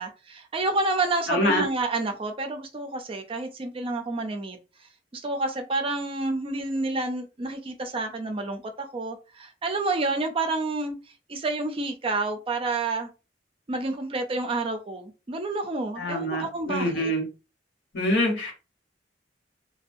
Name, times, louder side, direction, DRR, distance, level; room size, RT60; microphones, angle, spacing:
voice 1, 0.0-4.6 5.1-11.0 11.3-13.1 13.7-17.1, right 2 dB, 30° right, 0.4 m, -29 dB
voice 2, 1.3-1.6 16.0-17.2 17.9-18.5, equal, 75° left, 1.1 m, -25 dB
2.5 x 2.2 x 2.5 m
head